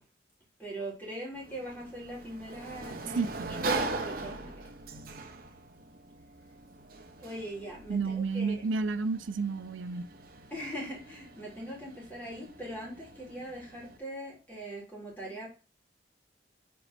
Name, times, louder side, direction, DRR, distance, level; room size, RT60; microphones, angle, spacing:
voice 1, 0.6-3.3 3.7-4.5 7.2-8.6 10.5-15.5, right 1 dB, 10° left, -4 dB, 2.9 m, -41 dB
Sliding door, 1.3-14.0, right 3 dB, 50° right, 0.9 m, -41 dB
voice 2, 3.2-3.8 7.9-10.1, right 4 dB, 85° right, 13 dB, 0.5 m, -31 dB
5.3 x 4.4 x 5.8 m, 0.33 s
head